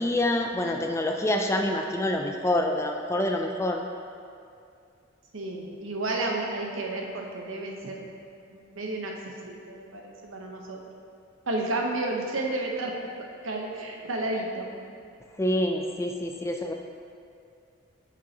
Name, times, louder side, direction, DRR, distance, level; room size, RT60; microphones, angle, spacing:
voice 1, 0.0-3.8 15.4-16.7, left 1 dB, 15° left, 3 dB, 0.3 m, -26 dB
voice 2, 5.3-8.0 8.5-9.1 9.5-10.8 11.5-12.9 13.4-14.7, right 2 dB, 80° right, 0 dB, 0.9 m, -31 dB
8.4 x 6.1 x 2.9 m, 2.4 s
head